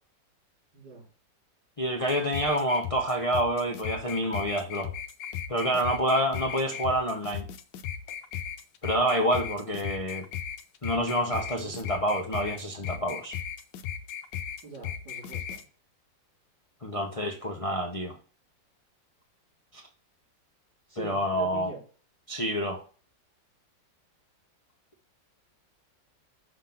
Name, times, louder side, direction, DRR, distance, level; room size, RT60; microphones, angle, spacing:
voice 1, 0.7-1.1 11.6-11.8 14.6-15.6 20.9-21.8, right 5 dB, 70° right, 3.5 m, -43 dB
voice 2, 1.8-4.9 5.5-7.4 8.8-10.2 10.8-13.3 16.8-18.2 19.7-19.8 21.0-21.7 22.3-22.8, equal, 60° left, 0.3 m, -28 dB
sound 1, 2.0-15.6, left 9 dB, 75° left, 1.4 m, -37 dB
6.3 x 3.9 x 5.7 m
omnidirectional pair, 2.0 m